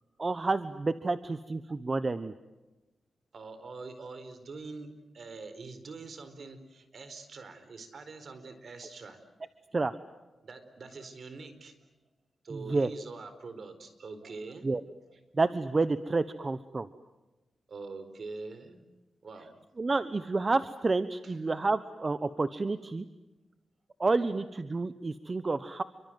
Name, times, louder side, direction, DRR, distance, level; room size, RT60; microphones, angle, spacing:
voice 1, 0.2-2.3 9.7-9.9 12.7-12.9 14.6-14.8 15.3-16.9 19.8-23.0 24.0-25.8, right 3 dB, 35° right, 12 dB, 1.1 m, -29 dB
voice 2, 3.3-9.2 10.4-11.7 12.4-14.7 17.7-18.8 19.2-19.6 21.2-21.3, right 3 dB, 60° right, 10 dB, 4.4 m, -44 dB
29.0 x 24.0 x 7.7 m, 1.1 s
cardioid pair, 85°, 0 cm